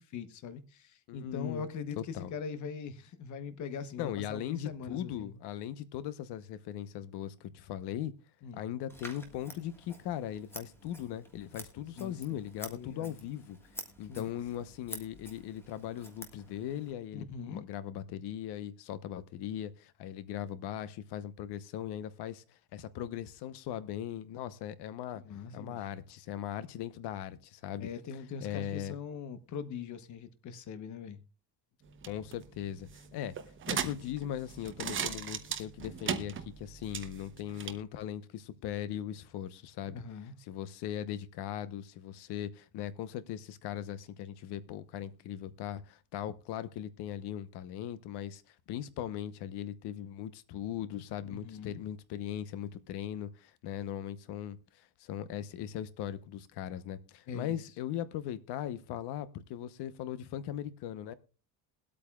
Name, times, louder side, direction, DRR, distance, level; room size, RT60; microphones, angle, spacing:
voice 1, 0.0-5.3 8.4-8.6 12.0-12.4 12.7-13.1 14.1-14.3 17.1-17.6 25.1-25.8 27.8-31.2 39.8-40.3 51.2-51.8 57.3-57.7, left 6 dB, 45° left, 1.0 m, -42 dB
voice 2, 1.1-1.7 2.0-2.3 4.0-8.1 8.5-13.6 14.0-25.2 25.5-27.9 28.4-28.9 32.1-33.4 33.7-40.0 40.5-61.1, left 11 dB, 65° left, 1.0 m, -39 dB
Scissors, 8.9-16.9, equal, 5° left, 1.6 m, -49 dB
sound 1, 31.8-37.8, right 8 dB, 30° right, 0.8 m, -39 dB
21.5 x 8.6 x 2.3 m
cardioid pair, 155°, 43 cm